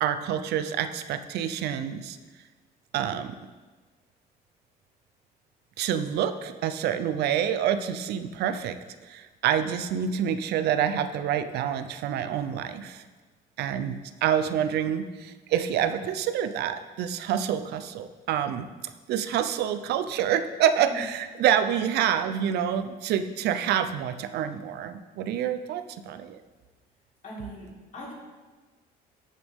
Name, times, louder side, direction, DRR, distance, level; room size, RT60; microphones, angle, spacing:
voice 1, 0.0-2.2 2.9-3.3 5.8-8.8 9.0-13.0 13.6-18.7 19.1-26.4, right 9 dB, 75° right, 11 dB, 0.7 m, -27 dB
voice 2, 27.2-28.1, equal, 50° left, -4 dB, 3.7 m, -41 dB
12.5 x 8.2 x 3.6 m, 1.3 s
cardioid pair, 110°, 17 cm